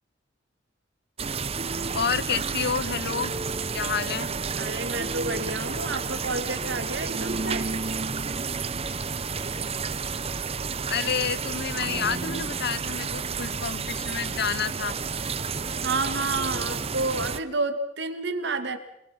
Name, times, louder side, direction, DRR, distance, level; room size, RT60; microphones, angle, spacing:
sound 1, 1.2-17.4, right 5 dB, 35° right, 0.8 m, -31 dB
voice 1, 1.9-3.3 3.7-4.3 10.9-15.0, left 6 dB, 60° left, 16 dB, 0.9 m, -29 dB
voice 2, 4.6-7.7 15.8-18.8, right 3 dB, 65° right, 8 dB, 2.3 m, -30 dB
27.0 x 21.5 x 5.9 m, 0.81 s
head